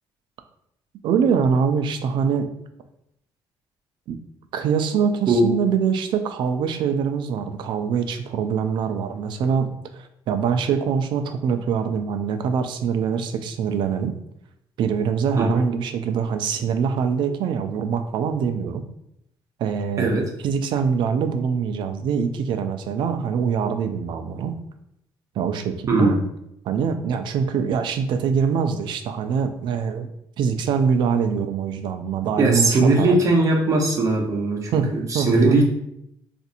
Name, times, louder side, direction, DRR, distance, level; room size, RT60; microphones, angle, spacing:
voice 1, 1.0-2.5 4.1-4.2 4.5-9.7 9.9-14.1 14.8-18.8 19.6-20.1 20.4-24.5 25.4-26.2 26.7-30.1 30.4-33.2 34.7-34.9 35.1-35.6, right 6 dB, 70° right, 7 dB, 0.4 m, -24 dB
voice 2, 32.4-35.6, right 2 dB, 40° right, 0 dB, 0.8 m, -19 dB
4.1 x 2.5 x 2.5 m, 0.77 s
cardioid pair, 120°, 9 cm